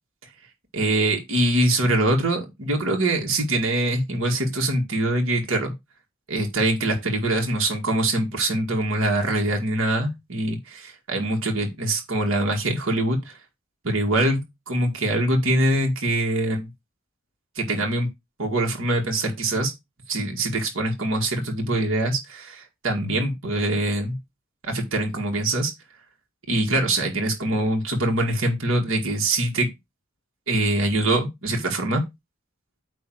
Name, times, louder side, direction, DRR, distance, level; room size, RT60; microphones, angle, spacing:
voice 1, 0.7-5.7 6.3-13.4 13.8-16.7 17.6-18.1 18.4-19.7 20.1-24.2 24.6-25.7 26.5-29.7 30.5-32.0, right 1 dB, 65° right, 1.9 m, -23 dB
8.5 x 2.9 x 6.2 m
head